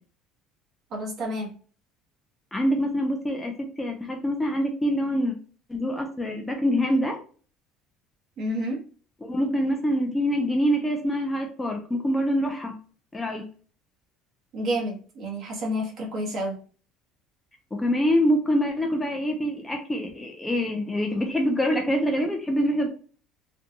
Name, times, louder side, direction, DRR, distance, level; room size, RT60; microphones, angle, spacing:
voice 1, 0.9-1.5 8.4-8.8 14.5-16.6, equal, 40° right, -1 dB, 0.9 m, -29 dB
voice 2, 2.5-3.5 3.8-5.3 5.7-7.2 9.3-12.7 13.1-13.4 17.8-22.9, equal, 10° left, 2 dB, 0.3 m, -25 dB
2.6 x 2.2 x 2.6 m, 0.40 s
cardioid pair, 165°, 0 cm